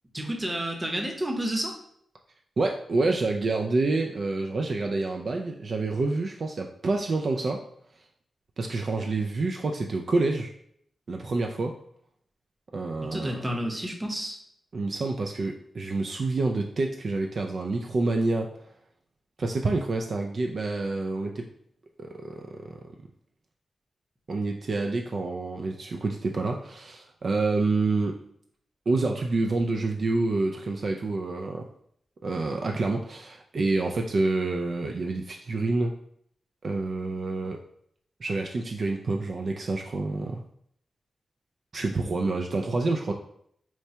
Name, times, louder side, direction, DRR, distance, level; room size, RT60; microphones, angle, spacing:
voice 1, 0.1-1.7 13.0-14.4, right 1 dB, 25° right, 1 dB, 0.8 m, -30 dB
voice 2, 2.6-7.6 8.6-10.5 11.1-11.7 12.7-13.4 14.7-18.5 19.4-21.5 22.0-22.8 24.3-28.2 28.9-31.7 32.2-35.9 36.6-37.6 38.2-40.4 41.7-43.1, right 3 dB, 60° right, 2 dB, 0.3 m, -28 dB
4.4 x 2.2 x 2.8 m, 0.69 s
cardioid pair, 55°, 0 cm